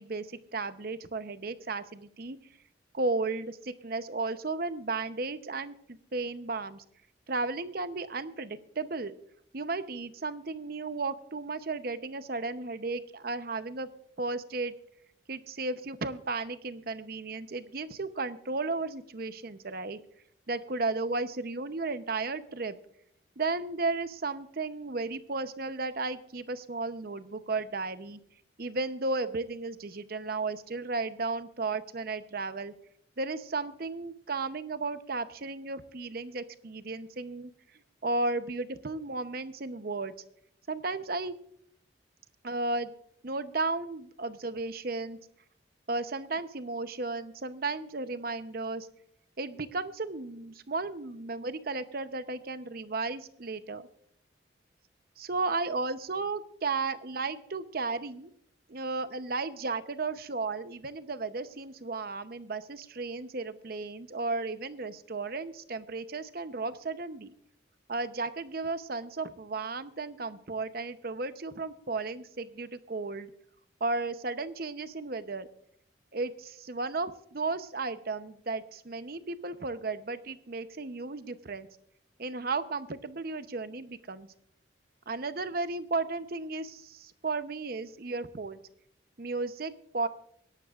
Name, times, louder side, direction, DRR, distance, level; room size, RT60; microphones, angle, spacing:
voice 1, 0.0-2.4 2.9-6.8 7.3-9.1 9.5-13.9 14.2-14.8 15.3-20.0 20.5-22.8 23.4-28.2 28.6-32.7 33.2-37.5 38.0-40.1 40.7-41.4 42.4-42.9 43.2-45.2 45.9-48.9 49.4-53.8 55.2-58.3 58.7-67.3 67.9-73.3 73.8-75.5 76.1-81.7 82.2-84.3 85.1-88.6 89.2-90.1, right 3 dB, 50° right, 11 dB, 0.8 m, -34 dB
25.0 x 11.5 x 2.4 m, 0.69 s
head